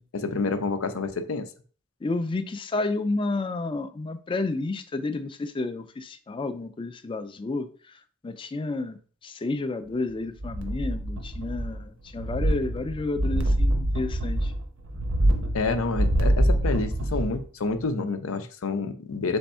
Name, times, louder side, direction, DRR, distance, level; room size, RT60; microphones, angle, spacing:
voice 1, 0.1-1.4 15.5-19.4, left 3 dB, 85° left, 0.5 m, -28 dB
voice 2, 2.0-7.7 8.2-9.0 9.2-14.5, left 3 dB, 25° left, 0.4 m, -31 dB
sound 1, 10.4-11.8 12.1-17.4 17.8-17.9, right 1 dB, 75° right, 0.8 m, -25 dB
3.5 x 3.4 x 4.2 m
head